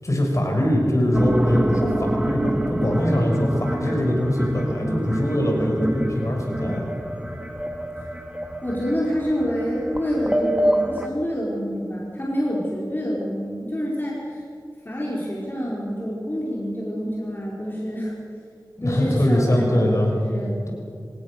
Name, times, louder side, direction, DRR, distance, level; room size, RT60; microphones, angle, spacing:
voice 1, 0.0-6.9 18.8-20.1, equal, 45° left, 0 dB, 6.5 m, -22 dB
sound 1, 1.1-11.1, right 1 dB, 15° right, 1.9 m, -27 dB
voice 2, 8.6-14.4 14.8-18.1 18.8-20.5, equal, 30° left, -5 dB, 4.7 m, -27 dB
25.0 x 18.5 x 6.8 m, 2.3 s
wide cardioid pair, 45°, 7 cm